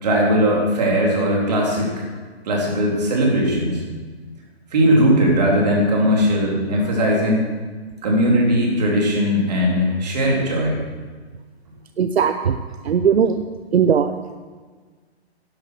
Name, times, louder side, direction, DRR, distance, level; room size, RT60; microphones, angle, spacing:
voice 1, 0.0-2.1 2.4-3.8 4.7-7.5 8.0-10.8, equal, 40° right, -2 dB, 3.4 m, -19 dB
voice 2, 12.0-12.6 12.8-13.4 13.7-14.1, right 7 dB, 75° right, 9 dB, 0.8 m, -18 dB
11.5 x 11.0 x 6.2 m, 1.4 s
hypercardioid pair, 175°, 32 cm